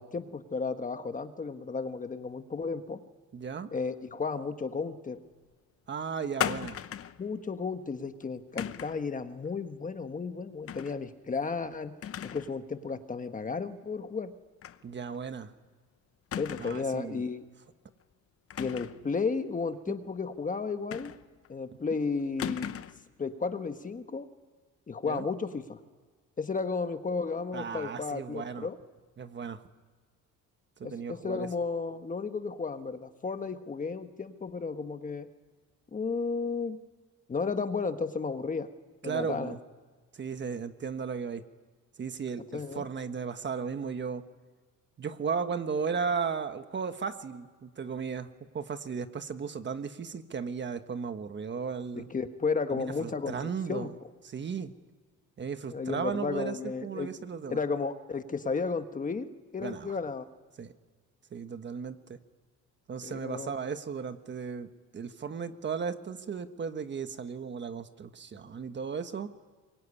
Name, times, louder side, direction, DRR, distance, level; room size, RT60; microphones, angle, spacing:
voice 1, 0.0-3.0 3.7-5.2 7.2-11.9 12.2-14.3 16.4-17.4 18.6-21.1 21.5-22.7 23.2-24.3 24.9-25.8 26.4-28.8 30.8-35.3 35.9-36.8 37.3-38.7 39.0-39.5 42.5-42.8 52.1-53.9 55.7-57.1 57.5-59.3 59.5-60.2 63.0-63.5, left 4 dB, 25° left, 8 dB, 1.3 m, -33 dB
voice 2, 3.3-3.7 5.9-6.8 14.8-15.5 16.6-17.2 25.0-25.2 27.5-28.7 29.2-29.6 30.8-31.5 39.0-39.6 40.1-41.4 42.0-44.2 45.0-48.3 48.5-52.1 52.7-53.9 54.2-54.7 55.4-57.6 59.6-59.9 60.6-60.7 61.3-62.2 62.9-69.3, right 6 dB, 35° right, 9 dB, 1.4 m, -35 dB
sound 1, 6.4-7.2 8.6-9.0 10.7-11.0 11.4-11.5 12.0-12.6 12.9-13.0 14.6-14.8 15.1-15.2 16.3-16.9 18.5-19.1 20.9-21.5 22.4-23.1, left 9 dB, 45° left, 0.9 m, -36 dB
24.5 x 23.0 x 9.9 m, 1.5 s
cardioid pair, 140°, 31 cm